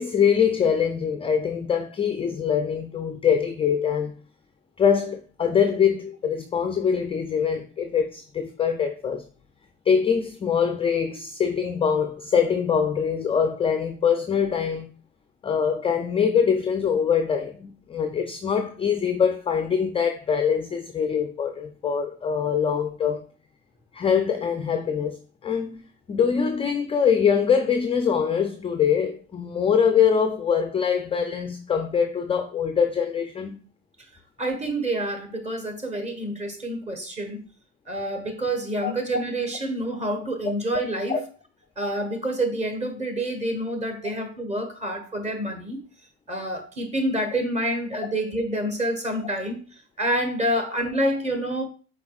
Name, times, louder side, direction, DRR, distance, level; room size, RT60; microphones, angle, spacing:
voice 1, 0.0-4.2 4.8-9.2 9.9-14.9 15.4-23.3 23.9-25.8 26.1-33.6 38.8-38.9 41.1-41.2, left 7 dB, 20° left, 0.3 m, -23 dB
voice 2, 34.4-37.5 37.9-41.2 41.8-45.8 46.3-49.6 50.0-51.6, right 1 dB, 20° right, 1.2 m, -27 dB
4.6 x 4.2 x 2.3 m
supercardioid pair, 90°, 32 cm